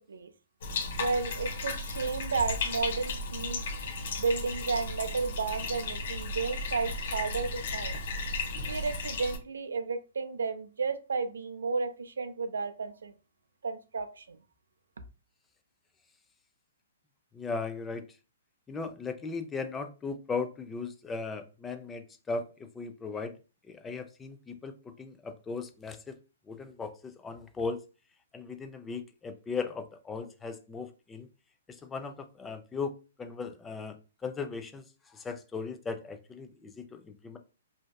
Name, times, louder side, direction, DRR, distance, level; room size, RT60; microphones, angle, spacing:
Bathtub (filling or washing), 0.6-9.4, left 3 dB, 60° left, 0.6 m, -35 dB
voice 1, 1.0-3.6 4.2-8.0 8.6-13.1 13.6-14.4, right 4 dB, 80° right, 9 dB, 0.4 m, -32 dB
voice 2, 17.3-18.0 18.7-23.4 23.7-26.2 26.5-27.8 28.3-31.3 31.7-32.9 33.2-34.8 35.1-37.4, left 4 dB, 15° left, 8 dB, 0.3 m, -37 dB
2.6 x 2.2 x 2.2 m, 0.32 s
hypercardioid pair, 135°, 0 cm